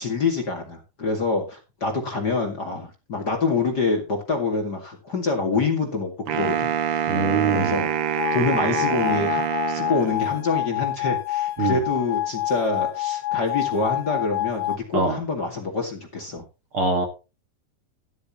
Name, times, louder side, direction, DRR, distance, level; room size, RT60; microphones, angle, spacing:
voice 1, 0.0-7.1 7.5-7.9 8.3-9.4 9.7-16.4, left 4 dB, 35° left, 2 dB, 2.3 m, -26 dB
Wind instrument woodwind instrument, 6.3-10.5, right 9 dB, 65° right, 1.4 m, -26 dB
voice 2, 7.1-7.7 11.6-11.8 14.9-15.1 16.7-17.1, right 3 dB, 45° right, 4 dB, 2.3 m, -23 dB
sound 1, 8.2-14.8, left 15 dB, 75° left, 1.3 m, -27 dB
13.0 x 12.5 x 3.0 m, 0.30 s
omnidirectional pair, 3.9 m